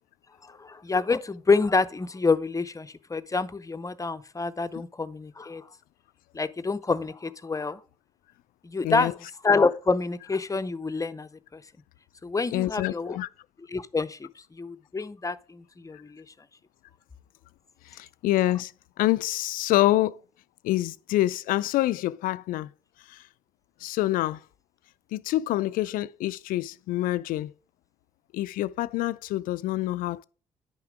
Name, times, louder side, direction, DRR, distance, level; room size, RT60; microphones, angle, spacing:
voice 1, 0.4-5.7 6.3-7.8 8.6-9.1 9.4-11.6 12.2-13.2 13.7-16.2, left 4 dB, 20° left, 0.6 m, -27 dB
voice 2, 12.5-13.3 17.9-18.7 19.0-20.2 20.6-22.7 23.1-23.2 23.8-24.4 25.1-27.5 28.3-30.2, left 15 dB, 65° left, 0.4 m, -26 dB
9.7 x 5.9 x 3.5 m
hypercardioid pair, 45°, 15 cm